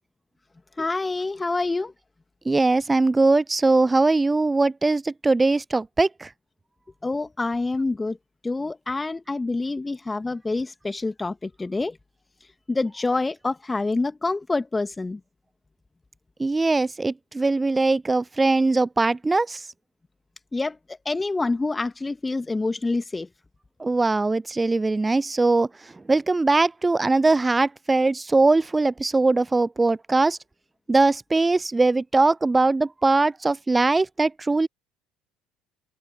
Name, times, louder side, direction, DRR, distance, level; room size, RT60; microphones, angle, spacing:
voice 1, 0.8-1.9 7.0-8.2 8.4-12.0 12.7-15.2 20.5-23.3, left 3 dB, 15° left, 1.7 m, -27 dB
voice 2, 2.5-6.3 16.4-19.6 23.8-25.7 26.1-30.4 30.9-34.7, right 3 dB, 15° right, 0.5 m, -21 dB
open air
figure-of-eight pair, 60°, 0 cm